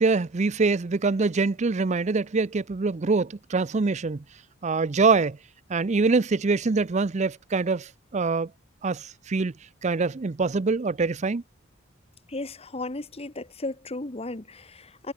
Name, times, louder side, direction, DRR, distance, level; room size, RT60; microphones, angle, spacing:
voice 1, 0.0-4.2 4.6-5.4 5.7-8.5 8.8-9.5 9.8-11.4, right 4 dB, 35° right, 0.5 m, -24 dB
voice 2, 12.3-15.1, left 2 dB, 30° left, 1.4 m, -35 dB
head